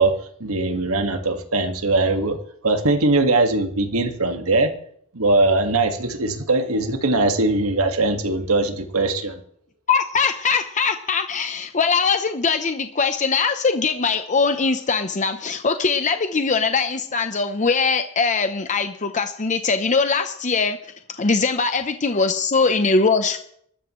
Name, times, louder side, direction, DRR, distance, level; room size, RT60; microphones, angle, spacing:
voice 1, 0.0-4.7 5.1-9.4, right 2 dB, 70° right, 6 dB, 1.9 m, -21 dB
voice 2, 9.9-20.8 21.2-23.4, left 4 dB, 35° left, 8 dB, 0.8 m, -21 dB
24.5 x 13.5 x 3.2 m, 0.64 s
head